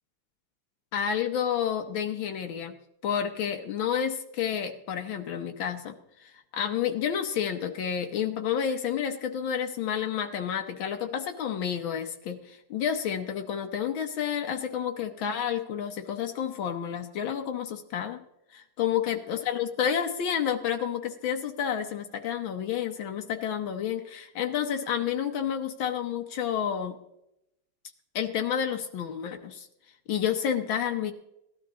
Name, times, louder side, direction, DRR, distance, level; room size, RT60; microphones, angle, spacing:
voice 1, 0.9-2.7 3.0-18.2 18.5-27.0 28.1-29.7 30.1-31.1, left 8 dB, 80° left, 5 dB, 1.7 m, -30 dB
17.5 x 12.5 x 3.7 m, 0.83 s
omnidirectional pair, 2.1 m